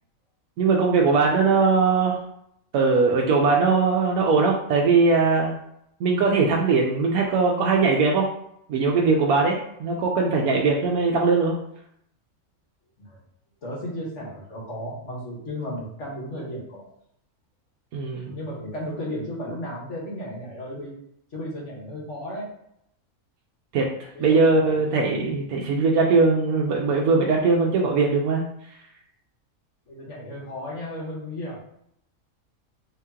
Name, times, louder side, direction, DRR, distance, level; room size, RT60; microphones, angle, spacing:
voice 1, 0.6-2.2 2.7-5.5 6.0-8.3 8.7-11.6 17.9-18.4 23.7-28.4, right 4 dB, 85° right, -1 dB, 1.1 m, -20 dB
voice 2, 13.6-16.9 18.3-20.9 21.3-22.6 24.1-25.0 29.9-31.6, left 1 dB, 55° left, -5 dB, 1.7 m, -34 dB
3.6 x 2.9 x 3.6 m, 0.73 s
omnidirectional pair, 1.5 m